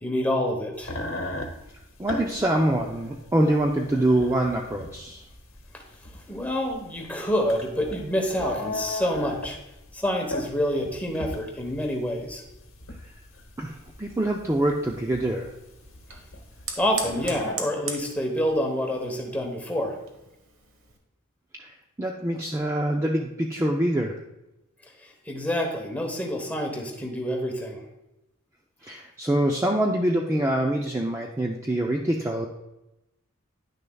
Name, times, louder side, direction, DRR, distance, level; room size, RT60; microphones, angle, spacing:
voice 1, 0.0-0.9 5.7-5.8 6.3-9.6 9.9-12.4 16.8-20.0 24.8-27.8, equal, 5° left, 2 dB, 1.0 m, -27 dB
sound 1, 0.8-17.5, left 1 dB, 65° left, 1.0 m, -37 dB
voice 2, 2.0-5.2 13.6-13.7 14.0-15.5 21.6-21.7 22.0-24.2 28.8-32.5, right 1 dB, 15° right, 0 dB, 0.4 m, -25 dB
Fire, 13.7-21.0, right 4 dB, 60° right, 1.2 m, -41 dB
10.0 x 6.6 x 2.3 m, 0.91 s
head